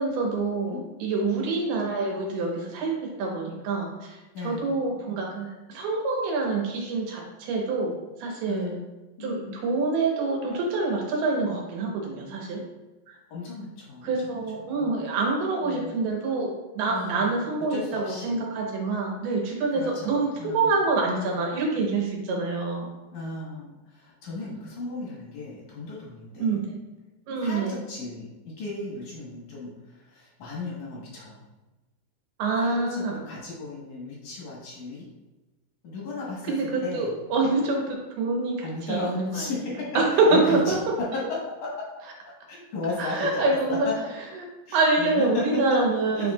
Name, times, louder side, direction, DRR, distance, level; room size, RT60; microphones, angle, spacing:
voice 1, 0.0-8.7 9.2-12.6 13.1-13.2 14.0-22.9 26.4-26.8 27.3-27.7 32.4-33.2 36.4-39.4 39.9-40.8 43.0-43.9 44.7-46.3, right 3 dB, 70° right, -1 dB, 2.7 m, -26 dB
voice 2, 0.6-1.5 4.3-4.7 8.4-8.9 9.2-9.6 13.3-14.9 15.6-15.9 16.9-17.4 17.7-18.4 19.8-20.7 23.1-26.6 27.4-31.4 32.6-35.0 35.8-37.1 37.4-37.5 38.6-39.6 40.1-40.7 41.1-41.2 42.5-43.9 44.7-45.4 46.2-46.3, left 3 dB, 65° left, -5 dB, 2.1 m, -36 dB
9.1 x 4.6 x 2.3 m, 1.1 s
omnidirectional pair, 5.2 m